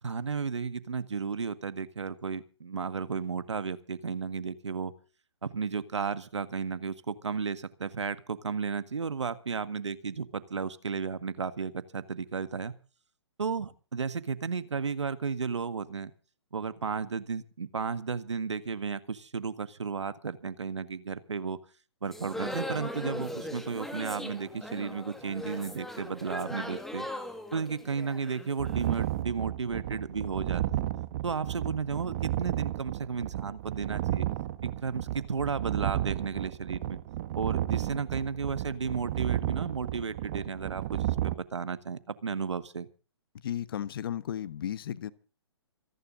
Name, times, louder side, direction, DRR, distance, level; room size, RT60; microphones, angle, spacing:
voice 1, 0.0-4.9 5.4-12.8 13.4-16.1 16.5-21.6 22.0-27.1 27.5-30.9 31.2-34.3 34.6-37.0 37.4-42.9, right 5 dB, 75° right, 1.8 m, -33 dB
sound 1, 22.1-29.1, left 1 dB, ahead, 1.9 m, -39 dB
sound 2, 28.6-41.3, right 14 dB, 40° right, 1.4 m, -33 dB
voice 2, 43.4-45.1, left 10 dB, 50° left, 1.3 m, -34 dB
26.5 x 11.0 x 3.9 m
figure-of-eight pair, 135°, 15 cm